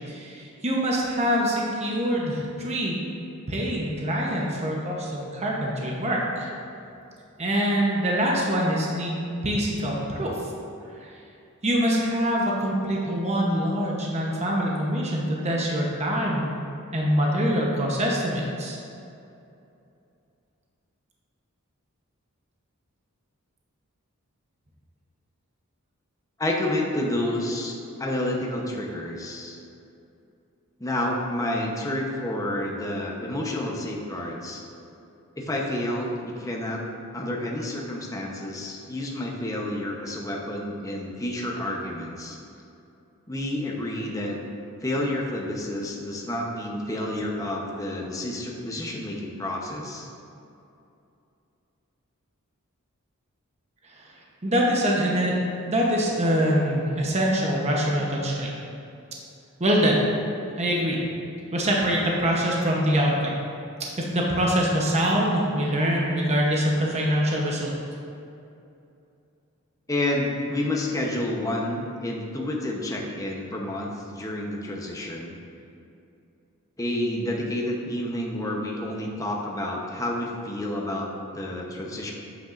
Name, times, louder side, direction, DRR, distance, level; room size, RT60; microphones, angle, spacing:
voice 1, 0.1-2.9 3.5-6.5 7.4-9.1 9.4-10.4 11.0-11.1 11.6-16.5 16.9-18.8 54.4-55.3 55.6-58.5 59.6-60.0 60.6-61.0 61.5-63.4 64.0-67.7, equal, 30° right, -2 dB, 0.9 m, -24 dB
voice 2, 26.4-29.6 30.8-34.6 35.4-36.8 37.1-42.4 43.3-44.4 44.8-50.1 69.9-75.4 76.8-81.1 81.3-82.1, left 1 dB, 15° left, -2 dB, 0.8 m, -29 dB
8.7 x 8.0 x 2.5 m, 2.7 s
head